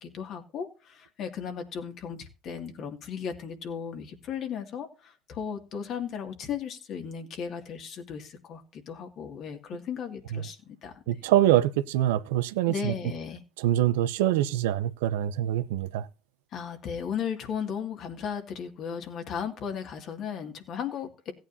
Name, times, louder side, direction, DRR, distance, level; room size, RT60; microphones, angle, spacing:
voice 1, 0.0-11.0 12.7-13.4 16.5-21.3, left 7 dB, 55° left, 2.2 m, -36 dB
voice 2, 11.1-12.9 13.6-16.1, right 13 dB, 80° right, 0.6 m, -24 dB
17.0 x 9.0 x 2.7 m
hypercardioid pair, 65°, 0 cm